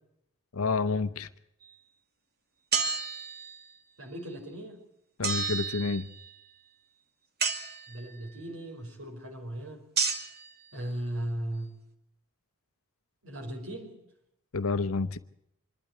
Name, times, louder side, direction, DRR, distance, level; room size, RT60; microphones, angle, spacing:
voice 1, 0.5-1.3 5.2-6.1 14.5-15.2, left 4 dB, 70° left, 14 dB, 0.8 m, -29 dB
sound 1, 2.7-3.7 5.2-6.4 7.4-8.2 10.0-10.5, right 5 dB, 45° right, 2.3 m, -31 dB
voice 2, 4.0-4.8 7.9-9.8 10.7-11.7 13.2-13.9, right 1 dB, 70° right, 1 dB, 5.0 m, -37 dB
26.0 x 12.5 x 9.5 m, 0.80 s
head